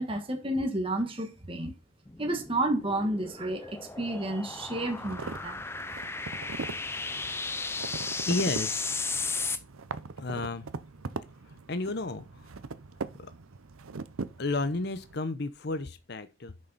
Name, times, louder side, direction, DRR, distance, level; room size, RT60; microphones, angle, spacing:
voice 1, 0.0-1.7 2.2-5.6, right 1 dB, 25° right, 1.4 m, -31 dB
sound 1, 2.1-9.6, left 4 dB, 10° left, 0.5 m, -35 dB
sound 2, 4.7-15.2, right 4 dB, 90° right, 0.7 m, -41 dB
voice 2, 8.3-8.9 10.2-10.6 11.7-12.2 14.4-16.5, left 2 dB, 50° left, 0.7 m, -31 dB
10.5 x 6.4 x 4.1 m
head